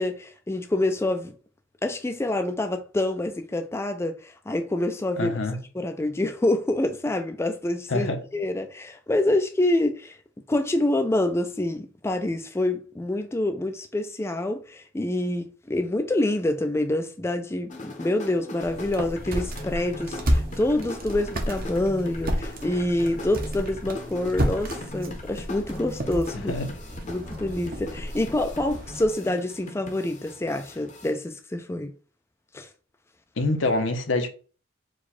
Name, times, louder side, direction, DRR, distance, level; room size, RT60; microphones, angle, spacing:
voice 1, 0.0-1.3 1.8-5.4 5.7-10.2 10.5-26.5 27.1-31.9 32.5-32.7, left 1 dB, 15° left, 0.3 m, -26 dB
voice 2, 5.2-5.6 7.9-8.2 26.5-26.7 33.4-34.3, left 2 dB, 75° left, 0.8 m, -25 dB
sound 1, 17.7-31.1, left 1 dB, 40° left, 0.8 m, -40 dB
sound 2, 18.6-29.1, equal, 50° right, 0.9 m, -31 dB
4.7 x 2.3 x 4.1 m
head